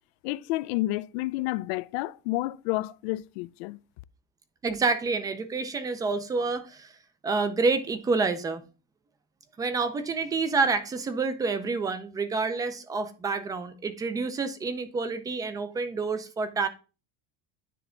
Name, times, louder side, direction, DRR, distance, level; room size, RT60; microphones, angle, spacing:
voice 1, 0.2-3.8, left 18 dB, 85° left, 0.5 m, -30 dB
voice 2, 4.6-6.9 7.2-8.6 9.6-16.7, right 4 dB, 10° right, 0.4 m, -28 dB
10.0 x 3.4 x 3.7 m
cardioid pair, 170°, 31 cm